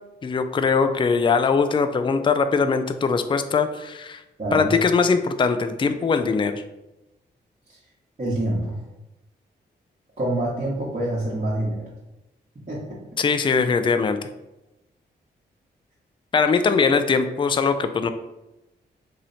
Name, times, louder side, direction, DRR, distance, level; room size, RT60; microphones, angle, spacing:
voice 1, 0.2-4.2 4.5-6.6 13.2-14.2 16.3-18.1, left 5 dB, 25° left, 9 dB, 0.3 m, -21 dB
voice 2, 4.4-4.7 8.2-8.8 10.2-11.9 12.7-12.8 13.6-13.7, right 1 dB, 40° right, -7 dB, 1.2 m, -26 dB
3.0 x 2.8 x 4.0 m, 0.97 s
supercardioid pair, 45°, 19 cm